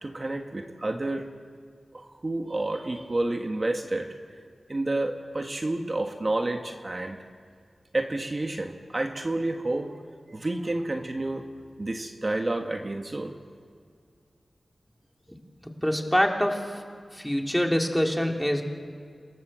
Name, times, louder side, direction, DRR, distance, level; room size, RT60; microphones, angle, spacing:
voice 1, 0.0-1.3 1.9-4.1 4.7-7.2 7.9-10.0 10.3-13.4, right 2 dB, 40° right, 4 dB, 1.7 m, -30 dB
voice 2, 15.3-16.8 17.1-18.6, equal, 5° left, 2 dB, 3.3 m, -26 dB
28.0 x 17.0 x 7.6 m, 2.2 s
cardioid pair, 50°, 0 cm